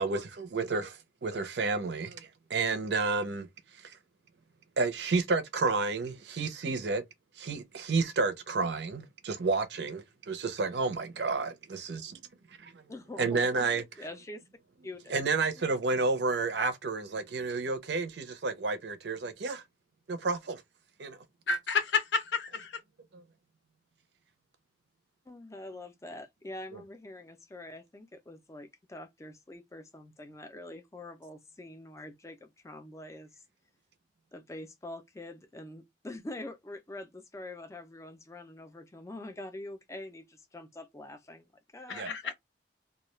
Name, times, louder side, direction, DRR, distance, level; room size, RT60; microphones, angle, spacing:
voice 1, 0.0-3.5 3.7-4.0 4.8-7.0 7.4-12.2 12.6-12.8 13.2-13.8 15.1-19.6 20.1-20.6 21.0-21.2 23.1-23.2 41.9-42.1, right 3 dB, 70° right, 0.5 m, -31 dB
voice 2, 12.9-14.4 14.8-15.2 15.6-15.7 25.3-33.4 34.3-41.4 41.7-42.3, left 1 dB, 15° left, 0.4 m, -45 dB
voice 3, 21.5-22.8 41.9-42.3, left 5 dB, 80° left, 0.6 m, -30 dB
2.3 x 2.2 x 3.0 m
head